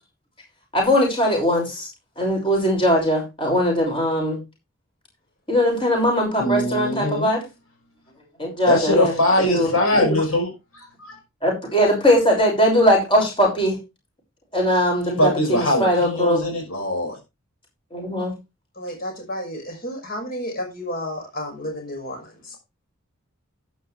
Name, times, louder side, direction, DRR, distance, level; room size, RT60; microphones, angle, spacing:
voice 1, 0.7-1.9 2.2-4.4 5.5-7.4 8.4-10.2 11.4-13.8 14.5-16.4 17.9-18.3, equal, 25° left, 0 dB, 6.1 m, -20 dB
voice 2, 6.4-7.3 8.7-10.5 11.1-11.2 15.2-17.2, left 1 dB, 75° left, 2 dB, 5.8 m, -21 dB
voice 3, 18.8-22.6, equal, 45° left, 2 dB, 5.8 m, -32 dB
12.0 x 10.5 x 3.4 m, 0.25 s
head